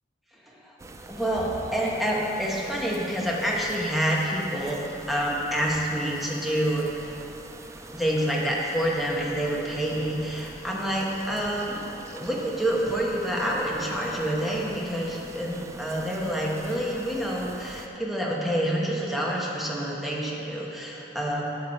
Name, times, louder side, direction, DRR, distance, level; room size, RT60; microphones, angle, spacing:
sound 1, 0.8-17.9, right 2 dB, 15° right, 0.3 m, -43 dB
voice 1, 1.1-7.1 7.9-11.8 12.1-21.4, right 1 dB, ahead, -4 dB, 1.1 m, -28 dB
10.5 x 6.2 x 4.3 m, 2.9 s
head